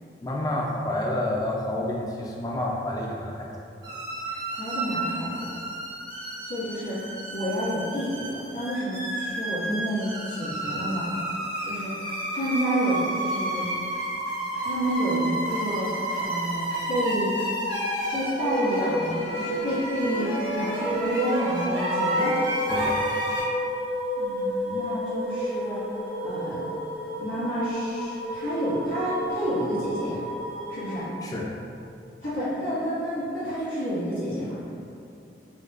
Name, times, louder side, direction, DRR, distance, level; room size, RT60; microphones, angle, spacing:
voice 1, 0.2-3.5 22.7-23.0 31.2-31.6, left 1 dB, 20° left, -2 dB, 0.3 m, -29 dB
sound 1, 3.8-23.4, right 1 dB, 85° right, 1.3 m, -30 dB
voice 2, 4.2-5.5 6.4-11.1 11.6-12.0 12.3-13.6 14.6-17.3 18.1-22.4 24.2-26.6 27.2-30.2 30.7-31.1 32.2-34.5, equal, 80° left, -16 dB, 1.5 m, -29 dB
sound 2, 13.7-31.0, equal, 45° right, 0.5 m, -34 dB
4.4 x 2.3 x 2.4 m, 2.6 s
head